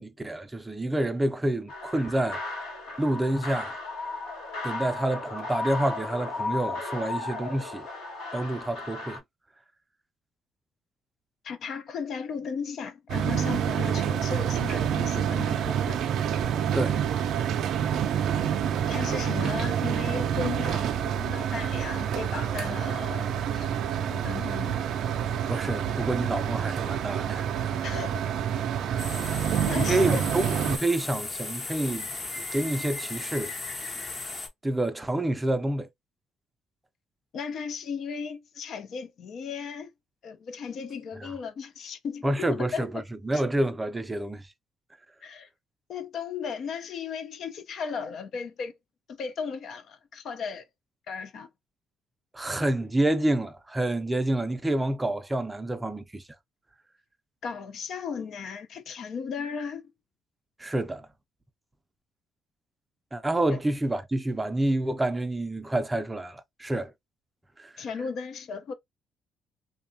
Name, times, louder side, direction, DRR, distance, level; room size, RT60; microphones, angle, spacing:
voice 1, 0.0-2.4 3.0-3.8 4.6-7.9 8.3-9.2 13.8-14.0 16.7-17.0 25.5-27.5 29.7-32.1 32.5-33.5 34.6-35.9 41.2-41.3 42.2-42.9 43.2-44.4 52.3-56.2 60.6-61.1 63.1-66.9 67.6-67.7, right 1 dB, 15° right, 0.4 m, -28 dB
sound 1, 1.7-9.2, left 3 dB, 85° left, 1.0 m, -35 dB
voice 2, 11.4-16.0 18.9-23.7 24.1-24.8 27.8-28.3 29.6-30.2 37.3-39.9 40.2-43.0 43.3-43.4 45.2-45.5 45.9-48.7 49.1-50.7 51.1-51.5 57.4-59.8 63.5-63.6 67.8-68.7, left 6 dB, 60° left, 0.5 m, -36 dB
sound 2, 13.1-30.8, right 9 dB, 70° right, 0.4 m, -28 dB
sound 3, 29.0-34.5, left 3 dB, 35° left, 0.7 m, -36 dB
2.7 x 2.2 x 2.6 m
cardioid pair, 95°, 0 cm